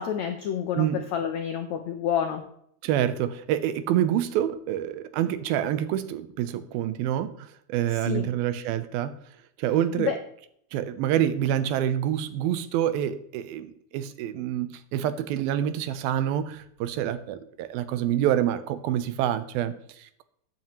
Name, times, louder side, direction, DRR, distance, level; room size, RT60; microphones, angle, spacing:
voice 1, 0.0-2.4 7.9-8.3 10.0-10.2, left 9 dB, 80° left, 6 dB, 1.6 m, -29 dB
voice 2, 2.8-9.1 9.6-10.1 10.7-20.2, right 11 dB, 85° right, 12 dB, 2.6 m, -27 dB
14.0 x 9.1 x 3.1 m, 0.71 s
omnidirectional pair, 4.2 m